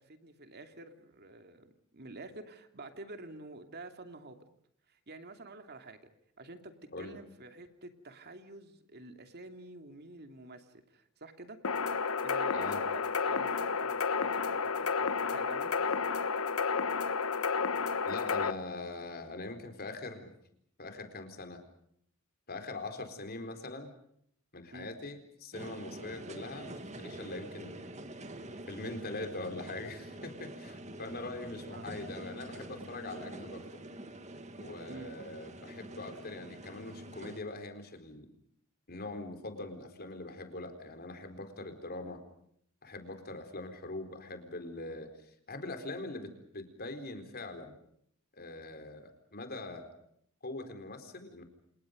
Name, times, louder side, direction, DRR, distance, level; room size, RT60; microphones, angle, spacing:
voice 1, 0.0-4.4 4.9-6.0 6.4-11.6 12.2-16.0 24.7-24.9 31.7-31.9 34.9-35.1, right 2 dB, 50° right, 6 dB, 2.8 m, -49 dB
sound 1, 11.6-18.5, left 5 dB, 80° left, 1.4 m, -31 dB
voice 2, 18.0-20.3 20.8-21.6 22.5-23.9 24.5-27.8 28.7-33.8 34.6-38.3 38.9-42.2 42.8-47.7 48.3-49.9 50.4-51.4, left 2 dB, 45° left, 7 dB, 4.3 m, -42 dB
sound 2, 25.5-37.4, right 1 dB, 35° right, 2.2 m, -46 dB
30.0 x 28.0 x 5.2 m, 0.68 s
head